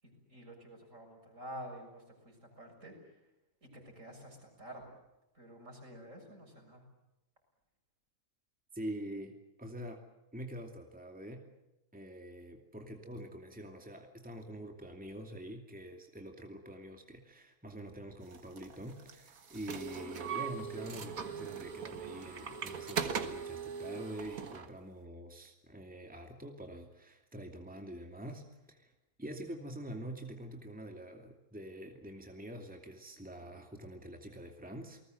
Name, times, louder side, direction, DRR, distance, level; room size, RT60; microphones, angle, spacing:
voice 1, 0.0-3.3 3.6-4.9 5.3-6.9, equal, 65° right, 2 dB, 7.1 m, -50 dB
voice 2, 8.7-10.0 10.3-11.5 11.9-28.9 29.2-35.0, right 1 dB, 5° right, 4 dB, 2.5 m, -45 dB
sound 1, 18.3-24.7, right 6 dB, 90° right, 2.0 m, -40 dB
29.0 x 19.5 x 7.9 m, 0.92 s
omnidirectional pair, 1.4 m